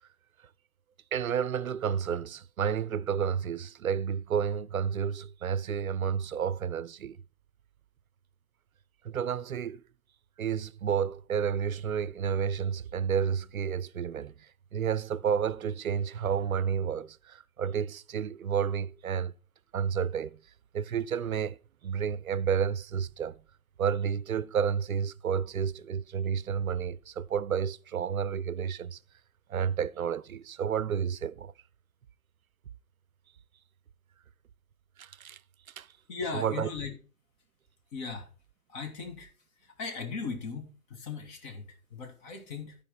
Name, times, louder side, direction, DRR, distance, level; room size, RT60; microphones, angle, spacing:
voice 1, 1.1-7.2 9.0-9.8 10.4-14.3 14.7-19.3 19.7-20.4 20.7-21.6 21.8-23.4 23.8-29.0 29.5-31.5 35.0-35.4 35.8-35.9 36.3-36.7, right 7 dB, 70° right, 0.6 m, -30 dB
voice 2, 36.1-37.0 37.9-38.3 38.7-39.3 39.6-42.8, left 4 dB, 35° left, 2.0 m, -38 dB
13.5 x 5.0 x 5.2 m
figure-of-eight pair, 120°, 43 cm